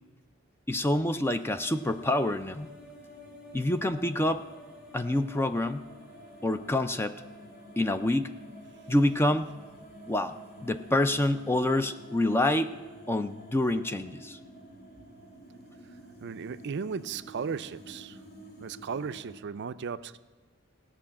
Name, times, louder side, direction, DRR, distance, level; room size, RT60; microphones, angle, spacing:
voice 1, 0.7-2.7 3.5-4.4 4.9-5.8 6.4-7.1 7.8-8.3 8.9-9.5 10.1-10.4 10.6-12.7 13.1-14.4, left 1 dB, 10° left, 10 dB, 0.4 m, -27 dB
sound 1, 1.3-19.4, equal, 45° left, 2.0 m, -49 dB
voice 2, 16.2-18.2 18.6-20.2, right 6 dB, 50° right, 13 dB, 0.4 m, -36 dB
16.5 x 6.2 x 8.6 m, 1.3 s
head